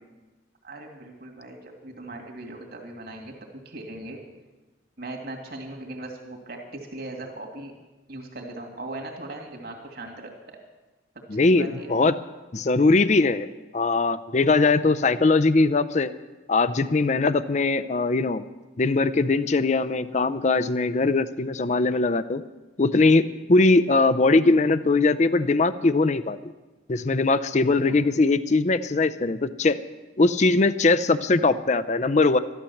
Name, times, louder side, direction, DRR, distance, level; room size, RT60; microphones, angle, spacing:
voice 1, 0.6-4.2 5.0-7.7 8.1-10.6 11.4-11.9 27.7-28.0, right 2 dB, 50° right, 1 dB, 2.5 m, -39 dB
voice 2, 11.3-12.1 12.5-13.5 13.7-16.1 16.5-18.4 18.8-22.4 22.8-26.4 26.9-29.8 30.2-32.4, left 3 dB, 35° left, 13 dB, 0.5 m, -21 dB
13.0 x 12.0 x 7.1 m, 1.2 s
head